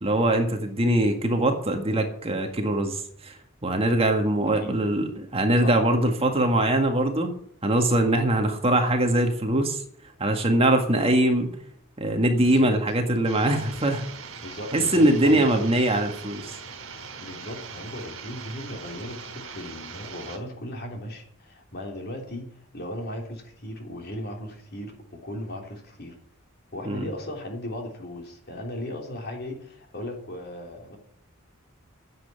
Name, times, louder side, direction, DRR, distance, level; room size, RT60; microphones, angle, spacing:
voice 1, 0.0-3.4 3.6-7.4 7.6-9.8 10.2-11.5 12.0-14.1 14.7-16.5 26.9-27.1, right 1 dB, 30° right, 4 dB, 1.9 m, -22 dB
voice 2, 12.4-12.7 14.4-15.6 17.2-26.2 26.7-31.0, left 1 dB, 50° left, 2 dB, 3.3 m, -37 dB
sound 1, 13.2-20.4, right 5 dB, 75° right, 3.2 m, -41 dB
10.5 x 7.9 x 9.7 m, 0.64 s
head